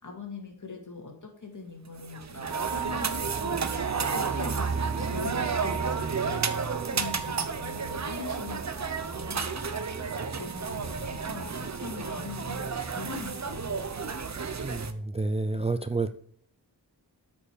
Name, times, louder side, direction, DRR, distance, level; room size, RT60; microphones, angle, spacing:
voice 1, 0.0-3.7 4.1-6.5 6.9-10.0 10.3-13.8, left 4 dB, 45° left, 1 dB, 2.4 m, -42 dB
sound 1, 2.0-14.9, right 5 dB, 40° right, 0.7 m, -32 dB
sound 2, 2.5-13.1, right 8 dB, 75° right, 0.6 m, -41 dB
voice 2, 14.6-16.1, right 3 dB, 15° right, 9 dB, 0.4 m, -29 dB
8.3 x 5.1 x 5.1 m, 0.62 s
wide cardioid pair, 90°, 42 cm